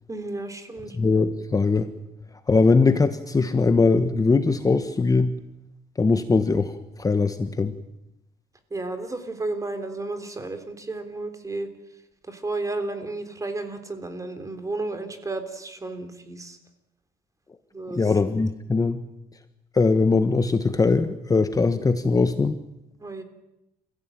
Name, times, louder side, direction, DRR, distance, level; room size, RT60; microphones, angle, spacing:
voice 1, 0.1-1.0 8.7-11.7 12.2-16.6 17.7-18.1 23.0-23.2, right 2 dB, 20° right, 8 dB, 3.6 m, -32 dB
voice 2, 1.0-1.9 2.5-5.3 6.0-7.7 17.9-19.0 19.7-22.6, left 4 dB, 20° left, 9 dB, 1.3 m, -21 dB
29.5 x 16.0 x 9.1 m, 0.89 s
cardioid pair, 110°, 17 cm